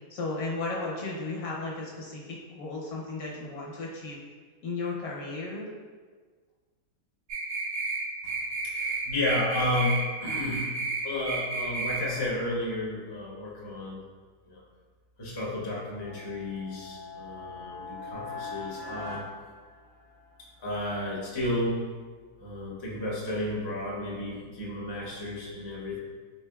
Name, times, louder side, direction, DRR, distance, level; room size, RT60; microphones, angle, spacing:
voice 1, 0.1-4.2 4.6-5.7, left 3 dB, 75° left, -4 dB, 1.3 m, -34 dB
sound 1, 7.3-8.0 8.3-9.0 9.3-10.0 10.3-11.0 11.3-12.0, right 4 dB, 80° right, 1.2 m, -31 dB
voice 2, 8.6-10.7 11.0-14.0 14.5-14.6 15.2-19.2 20.6-21.8 22.4-26.0, left 1 dB, 35° left, -4 dB, 0.4 m, -32 dB
sound 2, 16.0-20.3, left 3 dB, 60° right, 0.8 m, -41 dB
3.6 x 3.4 x 2.3 m, 1.5 s
omnidirectional pair, 1.6 m